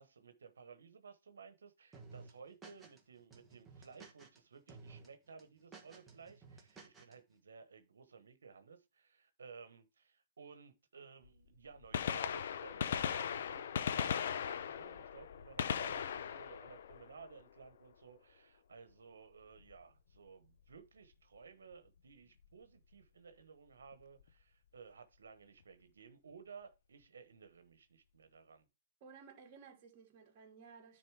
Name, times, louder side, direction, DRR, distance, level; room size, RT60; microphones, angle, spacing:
voice 1, 0.0-28.7, right 5 dB, 90° right, 1.1 m, -57 dB
sound 1, 1.9-3.0 3.3-4.4 4.7-5.1 5.4-7.1, right 4 dB, 10° right, 1.6 m, -55 dB
Gunshot gunfire, 11.2-11.3 11.8-17.7 19.6-19.7 20.7-20.8 22.4-22.5 23.9-24.0 24.2-24.3, left 8 dB, 65° left, 0.7 m, -38 dB
voice 2, 29.0-31.0, right 5 dB, 35° right, 2.8 m, -57 dB
9.7 x 4.1 x 4.7 m
hypercardioid pair, 150°, 0 cm